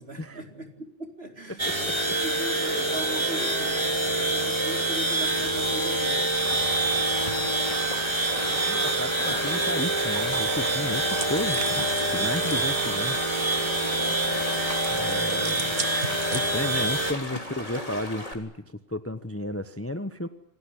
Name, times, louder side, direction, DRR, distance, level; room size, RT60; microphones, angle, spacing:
voice 1, 0.0-6.4 8.3-8.6 12.1-12.3 13.9-14.5 15.5-15.8, right 1 dB, 50° right, 4 dB, 4.4 m, -40 dB
sound 1, 1.6-17.1, right 2 dB, 20° right, 3.1 m, -26 dB
Stream, 6.3-18.3, left 1 dB, 25° left, 3.8 m, -37 dB
voice 2, 8.5-11.8 12.1-13.2 14.9-15.8 16.3-18.5 18.9-20.3, left 1 dB, 10° left, 11 dB, 1.0 m, -33 dB
sound 2, 11.1-12.7 14.7-16.8, right 6 dB, 70° right, 1.9 m, -38 dB
27.5 x 18.5 x 10.0 m, 0.73 s
omnidirectional pair, 1.3 m